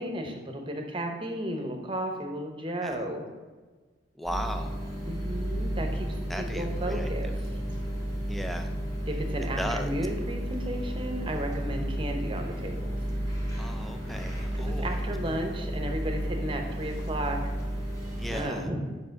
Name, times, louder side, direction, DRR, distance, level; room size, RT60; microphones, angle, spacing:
voice 1, 0.0-3.2 5.1-7.3 9.1-12.9 14.5-17.5 18.3-18.9, right 1 dB, 25° right, 3 dB, 0.8 m, -34 dB
voice 2, 4.2-4.7 6.3-7.1 8.3-8.7 9.6-9.9 13.6-14.9 18.2-18.7, equal, ahead, 5 dB, 0.3 m, -36 dB
sound 1, 4.3-18.4, equal, 15° left, 1.9 m, -32 dB
5.4 x 4.8 x 6.4 m, 1.3 s
head